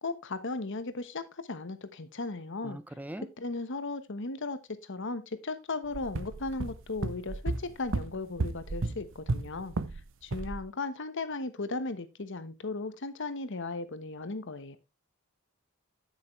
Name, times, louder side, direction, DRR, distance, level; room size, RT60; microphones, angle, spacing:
voice 1, 0.0-2.8 3.4-9.8 10.2-14.8, left 3 dB, 60° left, 1.2 m, -36 dB
voice 2, 2.6-3.3, right 1 dB, 10° right, 0.8 m, -40 dB
sound 1, 5.9-10.0 10.3-10.6, right 3 dB, 65° right, 0.7 m, -33 dB
9.6 x 8.5 x 3.2 m
head